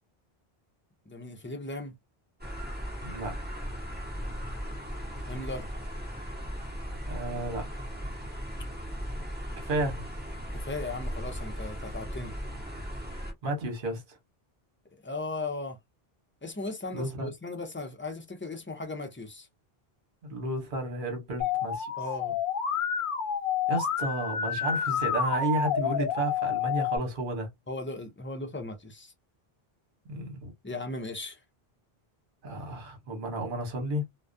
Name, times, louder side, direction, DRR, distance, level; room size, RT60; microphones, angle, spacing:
voice 1, 1.1-1.9 5.2-5.7 10.5-12.3 15.0-15.8 16.4-19.5 22.0-22.4 27.7-29.1 30.6-31.4, left 2 dB, 20° left, 0.3 m, -37 dB
sound 1, 2.4-13.3, equal, 10° right, 0.7 m, -37 dB
voice 2, 3.0-3.3 7.1-7.7 9.6-10.1 13.4-14.2 16.9-17.3 20.2-21.9 23.7-27.5 30.0-30.5 32.4-34.0, right 1 dB, 55° right, 1.0 m, -32 dB
Musical instrument, 21.4-27.0, left 7 dB, 60° left, 0.8 m, -29 dB
2.3 x 2.1 x 2.5 m
omnidirectional pair, 1.0 m